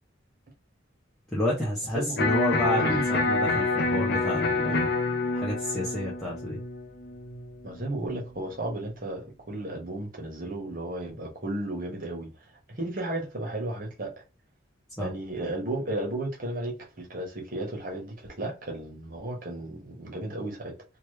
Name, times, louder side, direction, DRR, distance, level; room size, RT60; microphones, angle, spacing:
voice 1, 1.3-4.9 5.3-6.6 15.0-15.1, left 1 dB, ahead, 0.7 m, -30 dB
Electric guitar, 2.2-8.2, left 3 dB, 55° left, 0.5 m, -27 dB
voice 2, 2.7-3.1 7.6-14.1 15.0-20.7, right 1 dB, 45° right, 1.1 m, -34 dB
2.9 x 2.3 x 3.2 m
head